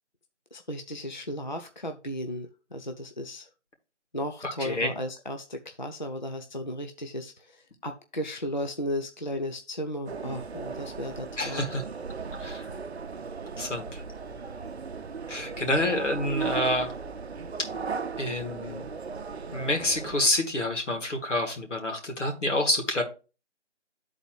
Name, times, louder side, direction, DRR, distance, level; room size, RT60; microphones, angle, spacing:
voice 1, 0.5-3.5 4.1-11.7, equal, 40° left, 5 dB, 0.5 m, -35 dB
voice 2, 4.4-4.9 11.4-11.8 12.4-12.7 13.6-14.0 15.3-16.9 17.6-17.7 18.2-18.8 19.5-23.0, left 1 dB, 90° left, 3 dB, 2.5 m, -28 dB
sound 1, 10.1-20.3, right 5 dB, 65° right, 0.6 m, -37 dB
12.0 x 4.0 x 3.0 m, 0.32 s
figure-of-eight pair, 180°, 35 cm